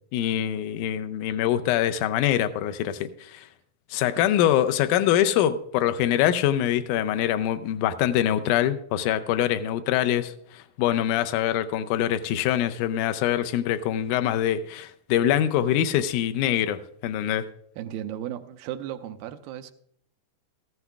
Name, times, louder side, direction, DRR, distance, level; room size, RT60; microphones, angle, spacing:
voice 1, 0.1-3.4 3.9-17.5, left 11 dB, 80° left, 1.9 m, -24 dB
voice 2, 17.8-19.7, right 11 dB, 85° right, 2.4 m, -35 dB
14.5 x 14.0 x 2.4 m
omnidirectional pair, 4.1 m